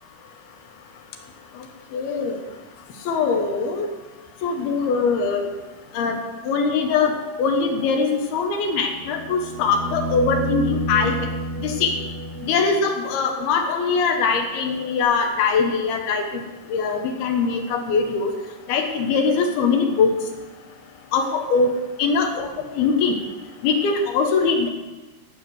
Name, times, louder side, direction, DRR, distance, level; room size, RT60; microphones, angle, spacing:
voice 1, 1.9-2.4 3.1-3.9 4.4-5.5 5.9-6.2 6.5-7.1 7.4-11.3 11.6-11.9 12.4-16.4 16.7-18.3 18.7-20.2 21.1-21.7 22.0-22.5 22.8-23.2 23.6-24.7, left 5 dB, 75° left, 4 dB, 3.2 m, -22 dB
sound 1, 8.8-12.9 15.3-15.4, right 1 dB, 80° right, 1.5 m, -29 dB
14.5 x 8.1 x 6.5 m, 1.2 s
omnidirectional pair, 4.6 m